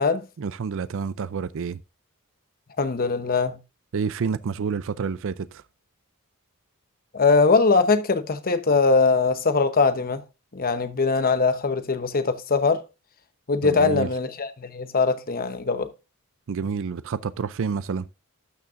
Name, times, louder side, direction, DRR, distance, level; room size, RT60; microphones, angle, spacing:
voice 1, 0.4-1.8 3.9-5.6 13.6-14.1 16.5-18.1, right 5 dB, 60° right, 0.4 m, -29 dB
voice 2, 2.8-3.6 7.1-10.2 10.5-12.8 13.5-15.9, left 4 dB, 40° left, 0.9 m, -21 dB
12.5 x 6.6 x 2.5 m
head